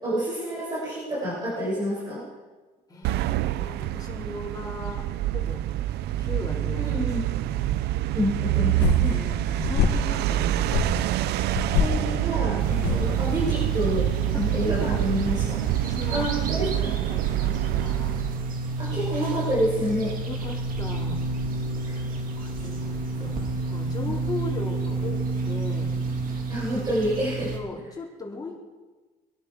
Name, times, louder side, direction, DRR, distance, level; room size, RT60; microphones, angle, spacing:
voice 1, 0.0-2.2 6.8-7.3 8.1-9.2 11.7-14.1 14.3-15.6 16.1-16.9 18.8-20.1 21.8-22.0 23.2-23.3 24.0-24.1 26.5-27.5, equal, 25° right, -8 dB, 6.7 m, -28 dB
voice 2, 2.9-5.6 6.2-7.8 9.0-10.9 14.3-15.0 15.8-16.2 16.7-18.1 20.2-21.2 22.4-25.9 27.5-28.6, left 3 dB, 20° left, -3 dB, 4.3 m, -38 dB
sound 1, 3.0-18.5, right 14 dB, 75° right, 0.5 m, -26 dB
sound 2, 8.5-13.9, left 7 dB, 80° left, 2.0 m, -28 dB
sound 3, 12.6-27.6, right 3 dB, 55° right, 2.6 m, -31 dB
24.5 x 11.0 x 4.9 m, 1.3 s
cardioid pair, 110°, 17 cm